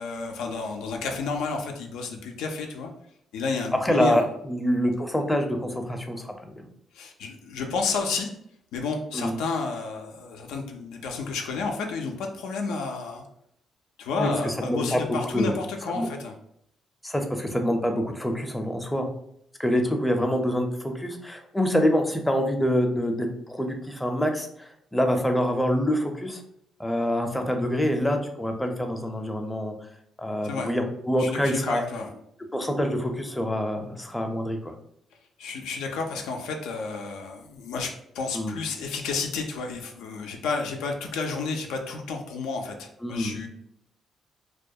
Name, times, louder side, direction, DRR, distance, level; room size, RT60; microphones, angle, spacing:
voice 1, 0.0-2.9 3.3-4.3 6.9-8.3 8.7-13.2 14.0-16.4 30.4-30.7 31.2-32.1 35.4-43.5, left 4 dB, 90° left, 2 dB, 0.3 m, -31 dB
voice 2, 3.8-6.5 9.1-9.4 14.2-15.0 15.3-15.5 16.0-16.1 17.0-19.1 19.6-26.4 26.8-29.7 30.2-31.8 32.5-34.7 38.3-38.5 43.0-43.4, equal, 10° left, 4 dB, 0.4 m, -26 dB
2.2 x 2.1 x 2.6 m, 0.72 s
cardioid pair, 75°, 0 cm